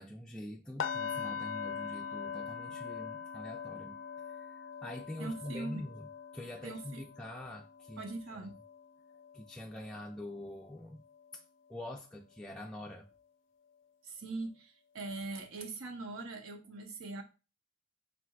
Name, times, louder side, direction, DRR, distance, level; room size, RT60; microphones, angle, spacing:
voice 1, 0.0-4.0 4.3-6.1 6.3-8.4 9.3-11.0 11.3-11.4 11.7-13.1, left 1 dB, 5° left, 0.4 m, -45 dB
sound 1, 0.8-10.7 11.1-11.3 11.8-11.9, left 7 dB, 65° left, 0.4 m, -43 dB
voice 2, 5.2-5.8 6.6-7.0 8.0-8.6 14.0-17.2, right 3 dB, 80° right, 0.9 m, -41 dB
4.4 x 4.0 x 2.4 m
head